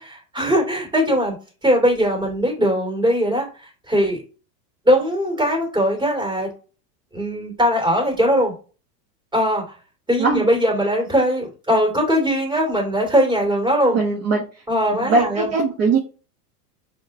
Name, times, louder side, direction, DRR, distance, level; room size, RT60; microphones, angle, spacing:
voice 1, 0.0-1.4 1.6-4.2 4.8-6.5 7.1-8.5 9.3-9.7 10.1-14.0 14.7-15.5, equal, 10° right, -2 dB, 2.2 m, -20 dB
voice 2, 13.9-14.4 14.9-16.0, right 4 dB, 30° right, 0 dB, 0.7 m, -20 dB
6.2 x 2.2 x 2.6 m, 0.35 s
supercardioid pair, 150°, 48 cm